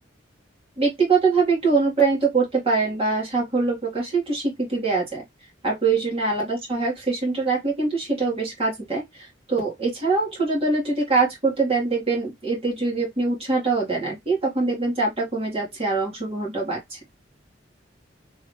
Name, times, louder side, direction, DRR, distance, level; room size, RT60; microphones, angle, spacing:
voice 1, 0.8-5.2 5.6-17.0, right 4 dB, 35° right, 2.1 m, -23 dB
3.6 x 3.1 x 3.2 m
head